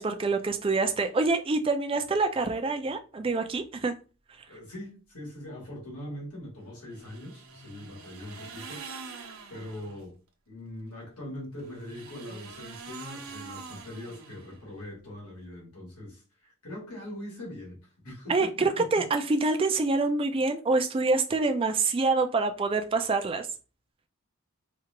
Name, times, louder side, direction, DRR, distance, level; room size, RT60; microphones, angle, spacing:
voice 1, 0.0-4.0 18.3-23.5, right 3 dB, 25° right, 0.4 m, -26 dB
voice 2, 4.5-8.8 9.5-10.2 10.5-19.1, left 1 dB, 90° left, 2.0 m, -42 dB
sound 1, 6.9-10.0 11.5-14.8, right 5 dB, 75° right, 0.8 m, -45 dB
4.5 x 2.4 x 2.9 m
head